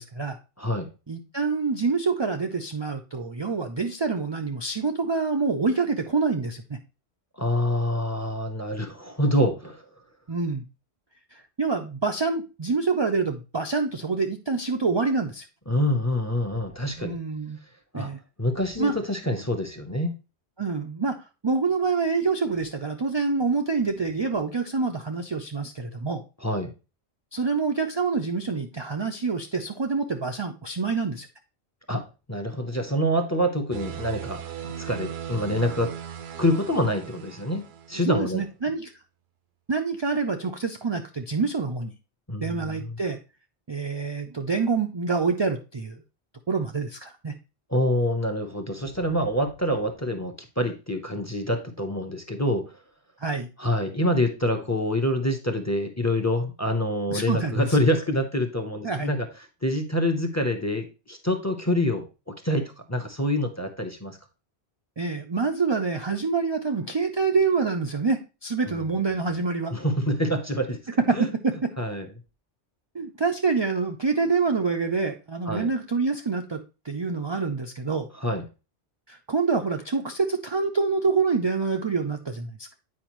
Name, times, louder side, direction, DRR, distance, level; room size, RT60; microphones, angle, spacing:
voice 1, 0.0-0.4 1.1-6.8 10.3-10.6 11.3-15.4 17.0-17.6 17.9-18.2 18.8-18.9 20.6-21.2 21.4-26.2 27.3-31.3 38.0-38.9 39.7-41.9 42.4-43.2 43.7-46.0 46.5-47.3 53.2-53.5 57.1-57.8 58.8-59.1 65.0-69.7 71.1-71.6 72.9-78.1 79.1-82.7, right 4 dB, 35° right, 5 dB, 0.4 m, -26 dB
voice 2, 0.6-0.9 7.4-9.8 15.7-17.2 17.9-18.1 18.4-20.1 26.4-26.7 31.9-32.0 32.3-34.4 34.8-35.9 36.4-38.4 42.3-42.9 47.7-52.6 53.6-59.3 59.6-62.0 62.4-64.2 68.7-68.8 69.7-70.8 71.1-71.3 71.8-72.1 75.5-75.7 78.2-78.4, left 1 dB, 15° left, 6 dB, 0.7 m, -26 dB
sound 1, 33.7-38.1, right 9 dB, 70° right, 0.9 m, -38 dB
8.5 x 5.0 x 3.0 m, 0.30 s
omnidirectional pair, 1.1 m